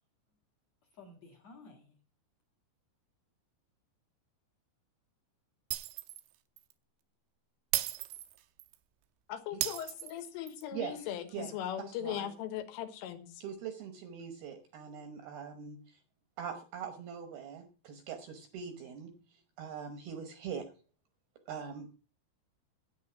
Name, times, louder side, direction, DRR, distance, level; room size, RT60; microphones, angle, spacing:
voice 1, 0.9-2.0, left 3 dB, 55° left, 1 dB, 1.9 m, -54 dB
Shatter, 5.7-6.3 6.6-6.7 7.7-8.8 9.6-10.6, right 15 dB, 90° right, 3.3 m, -36 dB
voice 2, 9.3-13.4, left 10 dB, 90° left, 8 dB, 3.8 m, -39 dB
voice 3, 10.7-12.3 13.4-16.0 16.4-20.7 21.5-21.9, right 7 dB, 75° right, 7 dB, 2.4 m, -43 dB
9.9 x 8.9 x 5.8 m, 0.37 s
omnidirectional pair, 5.6 m